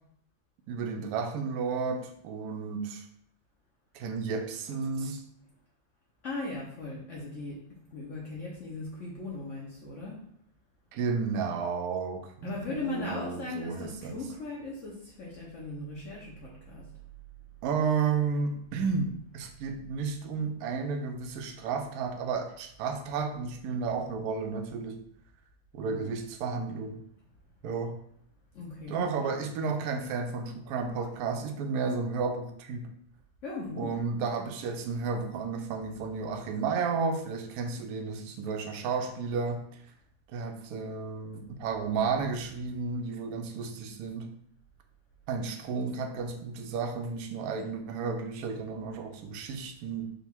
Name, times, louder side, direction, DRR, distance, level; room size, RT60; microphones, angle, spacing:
voice 1, 0.7-3.0 3.9-5.3 10.9-14.2 17.6-25.0 25.7-27.0 27.6-28.0 28.9-32.9 33.8-39.6 40.3-44.3 45.3-50.1, right 5 dB, 75° right, 4 dB, 0.8 m, -32 dB
voice 2, 6.2-10.2 12.4-16.9 25.8-26.1 28.5-29.1 33.4-34.0, left 2 dB, 75° left, -4 dB, 0.7 m, -38 dB
3.9 x 2.3 x 4.4 m, 0.67 s
omnidirectional pair, 2.2 m